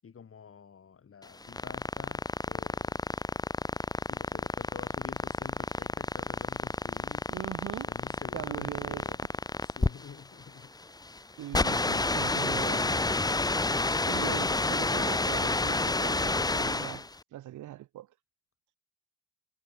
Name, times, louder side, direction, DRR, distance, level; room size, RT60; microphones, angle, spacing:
voice 1, 0.0-3.0 4.0-7.3 7.9-9.2 9.6-10.8 14.2-14.6, left 7 dB, 45° left, 7.0 m, -49 dB
sound 1, 1.2-17.1, left 2 dB, 15° left, 1.0 m, -30 dB
voice 2, 7.3-7.9 8.3-9.2 11.4-13.1 14.0-18.1, right 14 dB, 75° right, 1.8 m, -41 dB
cardioid pair, 90°, 30 cm